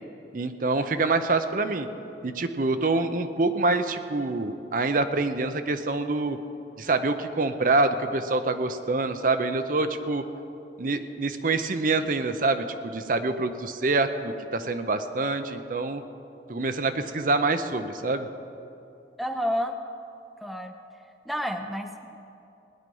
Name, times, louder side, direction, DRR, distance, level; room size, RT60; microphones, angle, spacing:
voice 1, 0.3-1.9 2.2-6.4 6.8-10.2 10.8-16.0 16.5-18.3, right 3 dB, 50° right, 9 dB, 0.6 m, -26 dB
voice 2, 19.2-19.8 20.4-20.7 21.3-22.1, equal, ahead, 5 dB, 0.6 m, -29 dB
18.0 x 10.5 x 5.4 m, 2.7 s
head